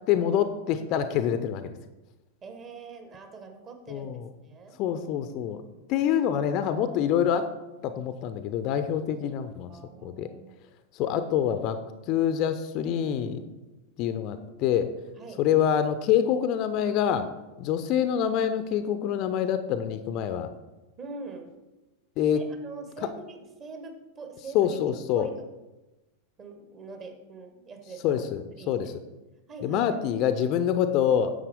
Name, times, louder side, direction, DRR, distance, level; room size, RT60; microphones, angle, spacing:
voice 1, 0.1-1.7 3.9-4.3 4.8-5.6 5.9-7.5 7.8-9.7 10.0-10.3 10.9-11.8 12.1-13.4 14.0-14.9 15.4-17.3 17.6-20.5 22.2-22.4 23.0-23.1 24.5-25.3 28.0-28.9 29.6-31.3, left 9 dB, 40° left, 11 dB, 0.6 m, -26 dB
voice 2, 2.4-4.1 4.4-4.8 9.7-10.6 15.2-15.4 17.9-18.1 21.0-21.5 22.3-24.8 25.1-25.3 26.4-28.2 28.6-28.7 29.5-29.9, right 4 dB, 30° right, 5 dB, 1.4 m, -43 dB
10.0 x 7.2 x 3.6 m, 1.1 s
figure-of-eight pair, 90°, 0 cm